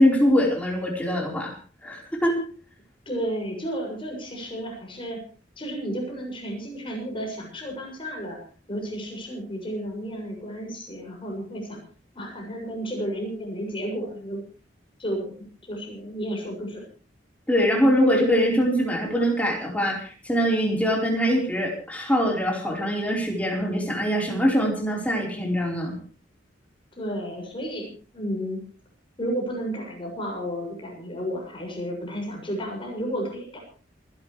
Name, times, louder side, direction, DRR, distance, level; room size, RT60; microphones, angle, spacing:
voice 1, 0.0-1.5 1.8-2.4 17.5-25.9, equal, 10° left, -1 dB, 4.5 m, -23 dB
voice 2, 3.1-5.2 5.6-8.4 8.7-11.8 12.2-14.4 15.0-15.3 15.7-16.8 27.0-28.6 29.2-33.6, equal, 30° left, 0 dB, 7.0 m, -32 dB
28.0 x 12.0 x 3.3 m, 0.40 s
head